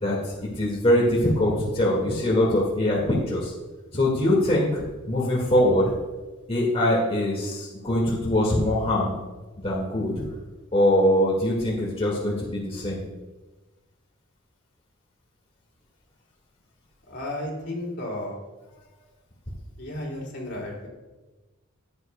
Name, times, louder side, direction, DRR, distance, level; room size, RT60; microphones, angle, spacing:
voice 1, 0.0-3.5 3.9-5.9 6.5-9.2 9.6-10.3 10.7-13.0 20.4-20.5, left 1 dB, 25° left, -5 dB, 2.0 m, -23 dB
voice 2, 17.1-18.4 19.8-20.9, left 1 dB, 50° left, -1 dB, 2.8 m, -33 dB
15.5 x 9.6 x 2.3 m, 1.2 s
head